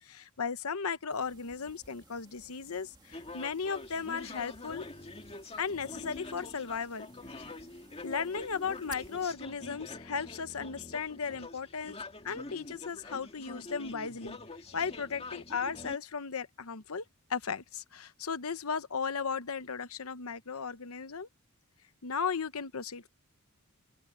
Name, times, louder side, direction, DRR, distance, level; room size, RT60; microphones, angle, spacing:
voice 1, 0.0-4.8 5.6-7.5 8.0-12.0 12.2-14.4 14.7-17.0 17.3-21.3 22.0-23.1, left 5 dB, 70° left, 0.9 m, -36 dB
sound 1, 1.1-9.3, right 3 dB, 20° right, 2.4 m, -57 dB
sound 2, 3.1-16.0, left 2 dB, 30° left, 2.1 m, -46 dB
open air
head